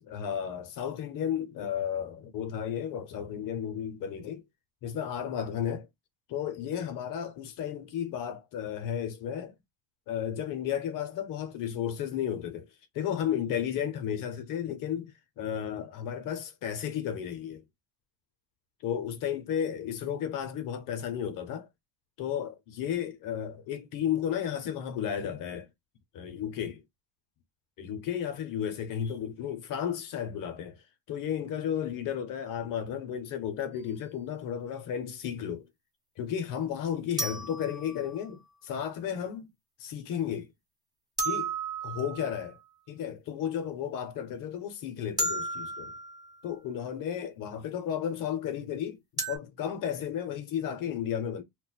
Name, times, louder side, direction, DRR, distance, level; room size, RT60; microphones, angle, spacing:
voice 1, 0.1-4.4 4.8-5.9 6.3-9.5 10.1-12.7 12.9-17.6 18.8-21.7 22.2-25.7 26.1-26.8 27.8-30.8 31.1-35.7 36.2-39.5 39.8-40.5 41.2-41.5 41.8-42.6 42.9-45.9 46.4-49.0 49.3-51.4, left 9 dB, 50° left, 0.5 m, -33 dB
sound 1, 33.7-33.9 37.2-38.5 41.2-42.6 45.2-46.4 49.2-49.4, right 2 dB, 10° right, 0.3 m, -34 dB
2.2 x 2.1 x 3.8 m
cardioid pair, 175°, 44 cm